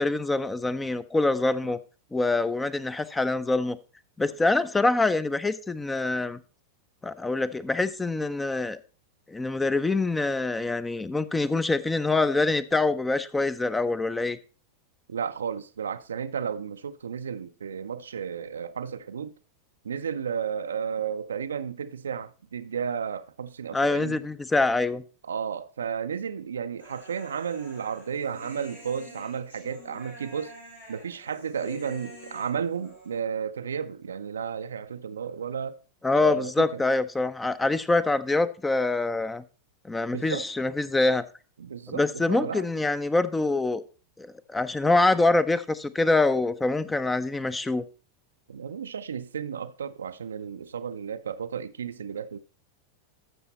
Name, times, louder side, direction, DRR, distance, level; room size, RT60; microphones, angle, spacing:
voice 1, 0.0-1.8 2.1-3.8 4.2-6.4 7.0-8.8 9.3-14.4 23.7-25.0 36.0-39.4 39.9-41.2 41.9-43.8 44.2-47.8, left 2 dB, 10° left, 0.6 m, -25 dB
voice 2, 15.1-19.3 19.8-24.2 25.3-30.5 30.9-35.8 36.1-36.8 40.1-40.4 41.6-42.6 48.5-52.4, right 7 dB, 70° right, 0.5 m, -33 dB
Human voice, 26.8-33.2, equal, 85° left, 6.3 m, -47 dB
12.5 x 7.0 x 4.1 m
figure-of-eight pair, 90°, 0 cm